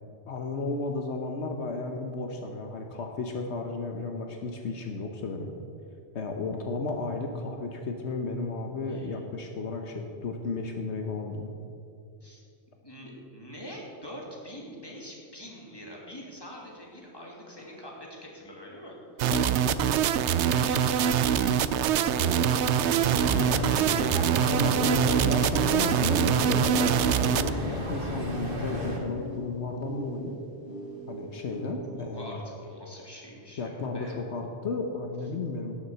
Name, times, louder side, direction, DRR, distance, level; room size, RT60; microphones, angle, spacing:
voice 1, 0.3-5.5 6.1-11.5 19.3-19.5 23.3-23.8 24.4-30.4 31.1-32.4 33.6-35.7, left 3 dB, 75° left, 4 dB, 1.3 m, -33 dB
voice 2, 8.9-9.2 12.2-12.4 12.8-19.0 20.5-24.1 31.9-34.2, equal, 20° left, -3 dB, 2.7 m, -44 dB
sound 1, 16.6-16.7 17.5-17.6 19.5-31.7, left 1 dB, 55° left, 3.9 m, -42 dB
sound 2, 19.2-27.5, right 9 dB, 80° right, 0.9 m, -24 dB
sound 3, 22.9-29.0, equal, 50° right, 2.0 m, -33 dB
17.5 x 7.3 x 6.8 m, 2.5 s
omnidirectional pair, 1.1 m